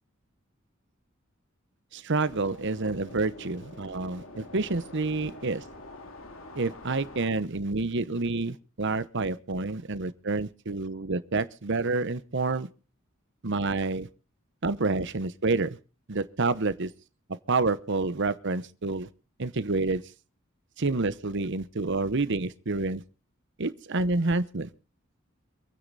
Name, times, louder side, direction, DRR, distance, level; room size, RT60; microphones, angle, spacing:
voice 1, 1.9-5.6 6.5-12.7 13.4-14.1 14.6-15.8 16.1-16.9 17.5-19.1 19.4-20.0 20.8-23.0 23.6-24.7, right 3 dB, 60° right, 1.0 m, -28 dB
sound 1, 2.1-7.3, left 2 dB, 75° left, 2.9 m, -46 dB
26.0 x 9.6 x 4.1 m
head